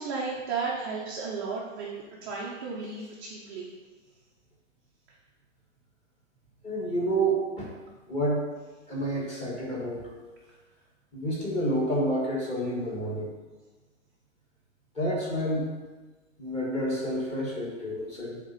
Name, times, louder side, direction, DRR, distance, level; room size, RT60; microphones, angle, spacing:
voice 1, 0.0-3.7, right 4 dB, 15° right, -5 dB, 0.5 m, -34 dB
voice 2, 6.6-7.7 8.1-8.4 8.9-10.1 11.1-13.3 14.9-15.7 16.4-18.4, right 1 dB, 15° left, -4 dB, 1.5 m, -29 dB
8.4 x 3.6 x 5.6 m, 1.3 s
hypercardioid pair, 160°, 40 cm